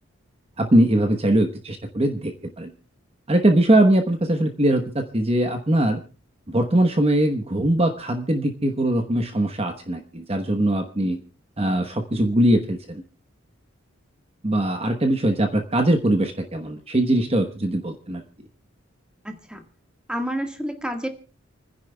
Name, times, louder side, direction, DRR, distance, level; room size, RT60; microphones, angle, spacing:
voice 1, 0.6-2.7 3.3-6.0 6.5-11.2 11.6-13.0 14.4-18.2, right 1 dB, 30° right, 5 dB, 1.0 m, -21 dB
voice 2, 19.2-19.6 20.1-21.1, equal, 5° right, 5 dB, 1.6 m, -29 dB
29.0 x 10.5 x 2.3 m, 0.35 s
head